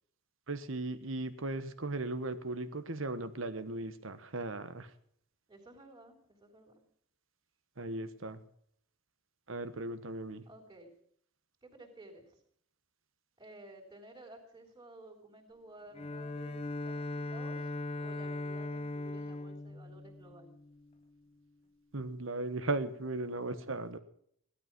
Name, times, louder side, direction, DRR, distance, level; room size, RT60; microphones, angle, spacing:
voice 1, 0.5-4.9 7.8-8.4 9.5-10.4 21.9-24.0, right 2 dB, 75° right, 11 dB, 1.3 m, -37 dB
voice 2, 5.5-6.8 10.4-10.9 11.6-12.4 13.4-17.0 17.3-20.5, right 2 dB, 20° right, -4 dB, 3.5 m, -54 dB
Bowed string instrument, 15.9-21.0, left 2 dB, 30° left, 0.7 m, -39 dB
16.5 x 12.0 x 6.1 m, 0.66 s
head